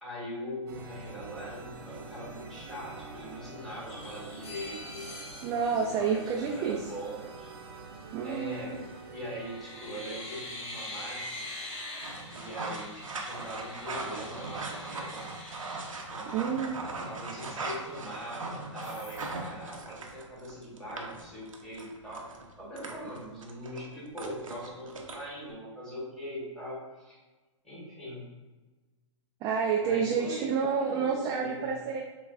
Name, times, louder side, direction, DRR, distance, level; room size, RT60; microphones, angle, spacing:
voice 1, 0.0-5.1 5.6-7.5 8.2-8.8 9.1-11.5 12.3-15.3 16.1-16.4 16.7-22.3 22.6-27.2 27.6-28.3 29.8-31.7, equal, ahead, -7 dB, 1.5 m, -41 dB
sound 1, 0.7-11.8, right 3 dB, 50° right, 0.7 m, -46 dB
sound 2, 3.9-6.9 8.7-9.1 9.4-16.7 17.1-17.2 17.5-18.4 18.8-19.3, left 1 dB, 60° left, 1.0 m, -44 dB
voice 2, 5.4-6.8 8.1-8.8 16.3-16.8 29.4-32.0, right 6 dB, 25° right, -1 dB, 0.3 m, -29 dB
sound 3, 12.0-25.5, right 3 dB, 90° right, 0.7 m, -40 dB
5.8 x 2.3 x 2.4 m, 1.2 s
hypercardioid pair, 125°, 17 cm